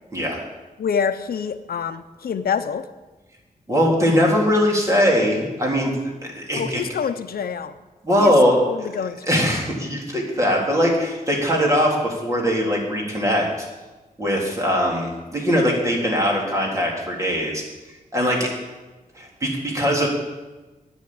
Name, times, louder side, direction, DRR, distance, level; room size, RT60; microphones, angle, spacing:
voice 1, 0.8-2.9 6.5-7.7 8.2-8.3 8.7-9.5, left 7 dB, 80° left, 10 dB, 0.7 m, -26 dB
voice 2, 3.7-5.9 6.3-6.8 8.0-8.9 9.3-13.7 14.2-17.6 18.1-18.5 19.2-20.1, equal, 20° right, -2 dB, 3.7 m, -21 dB
10.5 x 10.0 x 8.7 m, 1.2 s
wide cardioid pair, 130°, 15 cm